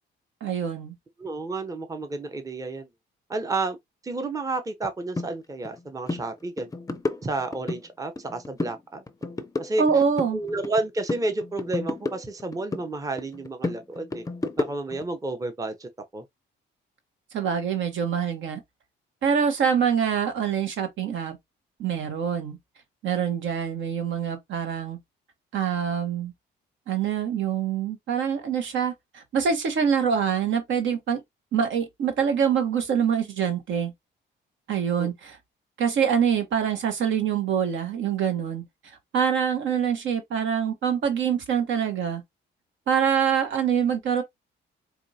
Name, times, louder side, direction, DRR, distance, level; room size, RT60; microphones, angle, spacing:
voice 1, 0.4-0.9 9.8-10.4 17.3-18.6 19.2-21.4 21.8-22.6 23.0-25.0 25.5-26.3 26.9-31.2 31.5-33.9 34.7-35.4 35.8-38.6 39.1-42.2 42.9-44.2, right 7 dB, 75° right, 1.2 m, -25 dB
voice 2, 1.2-2.9 3.3-3.8 4.0-6.7 7.2-9.0 9.6-9.8 10.3-14.2 14.6-16.2 35.0-35.1, right 2 dB, 15° right, 0.7 m, -31 dB
sound 1, 5.2-5.3 5.6-5.8 6.1-6.2 6.6-7.8 8.2-8.8 9.1-10.8 11.1-12.9 13.2-15.0, left 2 dB, 15° left, 0.5 m, -31 dB
4.4 x 2.3 x 2.7 m
cardioid pair, 90°, 20 cm